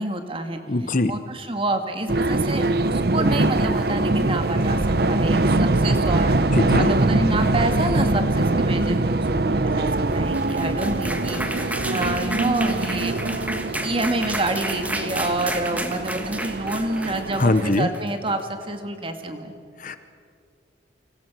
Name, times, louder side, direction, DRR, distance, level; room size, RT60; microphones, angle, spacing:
voice 1, 0.0-0.6 1.1-4.8 5.1-9.9 10.1-13.1 13.8-19.5, right 2 dB, 30° right, 6 dB, 2.0 m, -28 dB
voice 2, 0.7-1.1 6.5-6.9 17.4-17.9 19.8-20.0, left 2 dB, 45° left, 11 dB, 1.0 m, -21 dB
sound 1, 2.1-17.6, right 2 dB, 60° right, 0.9 m, -23 dB
sound 2, 10.1-18.4, right 1 dB, 10° right, 1.5 m, -32 dB
29.5 x 26.0 x 6.2 m, 2.4 s
head